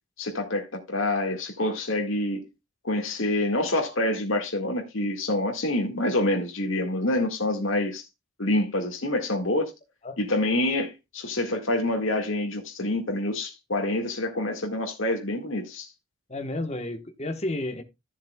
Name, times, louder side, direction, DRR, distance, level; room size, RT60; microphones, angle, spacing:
voice 1, 0.2-2.4 2.8-8.0 8.4-9.7 10.2-15.9, left 1 dB, 70° left, 1.9 m, -27 dB
voice 2, 16.3-17.8, left 1 dB, 30° left, 1.2 m, -31 dB
15.0 x 7.2 x 2.3 m
head